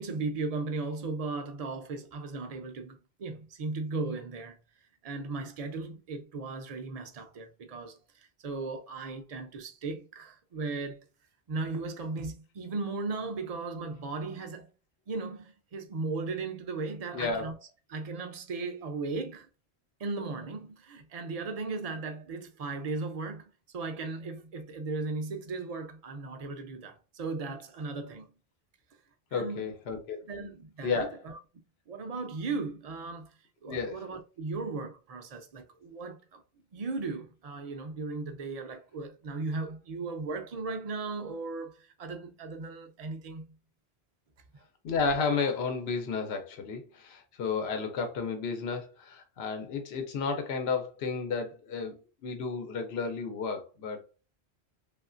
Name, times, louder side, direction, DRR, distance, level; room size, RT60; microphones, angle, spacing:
voice 1, 0.0-4.6 5.0-11.0 11.5-14.7 15.1-17.5 17.9-19.5 20.0-28.3 29.3-29.7 30.2-31.4 31.9-33.3 33.6-36.4 36.7-43.4 44.5-44.6, right 3 dB, 50° right, 0.5 m, -36 dB
voice 2, 17.1-17.5 29.3-30.2 30.8-31.2 33.7-34.0 44.8-54.0, left 5 dB, 75° left, 0.9 m, -32 dB
3.1 x 2.4 x 2.4 m
omnidirectional pair, 1.1 m